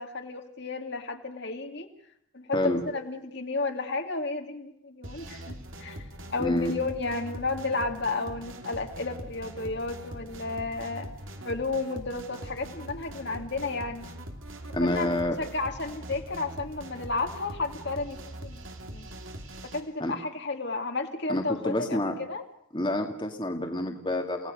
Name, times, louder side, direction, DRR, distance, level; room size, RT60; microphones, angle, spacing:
voice 1, 0.0-1.9 2.3-6.0 6.3-11.1 11.4-14.1 14.8-19.1 19.6-22.0 22.3-22.4, left 3 dB, 55° left, 4 dB, 2.5 m, -32 dB
sound 1, 5.0-19.8, right 1 dB, 70° right, 2.9 m, -42 dB
voice 2, 6.4-6.7 14.7-15.4 20.0-20.1 21.3-22.2 22.7-24.5, left 1 dB, 25° left, 3 dB, 2.1 m, -28 dB
30.0 x 18.0 x 6.4 m, 0.71 s
head